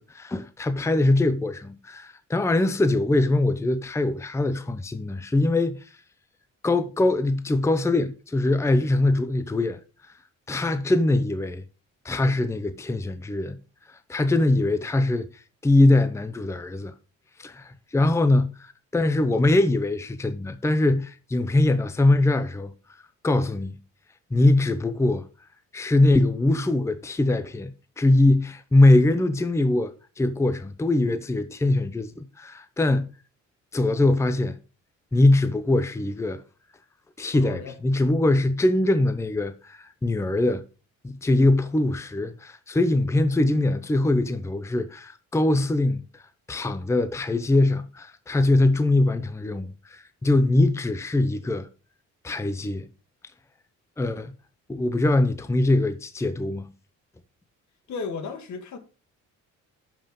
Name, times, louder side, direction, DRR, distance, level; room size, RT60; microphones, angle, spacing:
voice 1, 0.1-5.8 6.6-9.8 10.5-11.6 12.0-13.6 14.1-15.3 15.6-16.9 17.4-22.7 23.2-23.8 24.3-25.3 25.7-33.1 33.7-34.6 35.1-36.4 37.2-40.6 41.0-46.0 46.5-51.7 52.2-52.9 54.0-54.3 54.7-56.7, left 2 dB, 10° left, 0.6 m, -22 dB
voice 2, 37.3-37.8 57.9-58.8, left 5 dB, 70° left, 1.6 m, -34 dB
6.7 x 5.7 x 5.2 m
cardioid pair, 90°, 30 cm